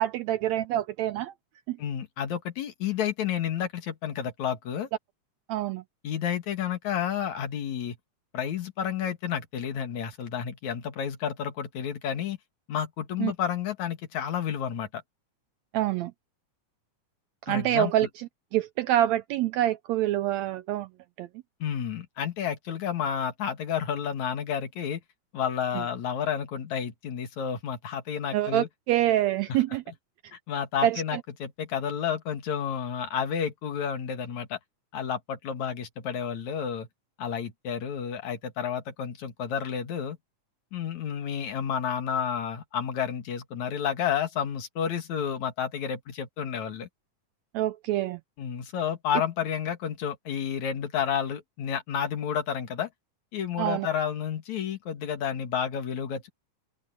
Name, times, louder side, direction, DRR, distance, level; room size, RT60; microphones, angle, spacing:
voice 1, 0.0-1.3 1.7-1.8 5.5-5.8 13.2-13.3 15.7-16.1 17.4-20.9 21.2-21.3 28.3-29.8 30.8-31.2 47.5-48.2 53.6-53.9, right 13 dB, 80° right, 1.6 m, -26 dB
voice 2, 1.8-4.9 6.0-8.0 8.3-12.4 12.7-15.0 17.5-17.9 21.6-25.0 25.3-28.7 30.3-34.6 34.9-36.9 37.2-40.2 40.7-46.9 48.4-52.9 53.3-56.3, left 8 dB, 65° left, 3.1 m, -31 dB
open air
omnidirectional pair, 3.6 m